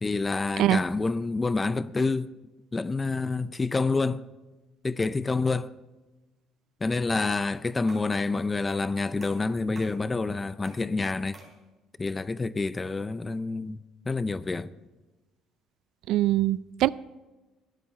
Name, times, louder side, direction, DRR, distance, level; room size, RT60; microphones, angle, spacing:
voice 1, 0.0-2.3 2.7-4.2 4.8-5.7 6.8-11.4 12.0-13.8 14.0-14.7, left 3 dB, 15° left, 0.4 m, -28 dB
sound 1, 7.9-8.2 8.7-8.9 9.2-10.0 10.6-10.9 11.3-11.6, right 2 dB, 25° right, 3.2 m, -50 dB
voice 2, 16.1-16.9, right 14 dB, 70° right, 0.3 m, -23 dB
16.0 x 11.0 x 4.2 m
cardioid pair, 135°, 0 cm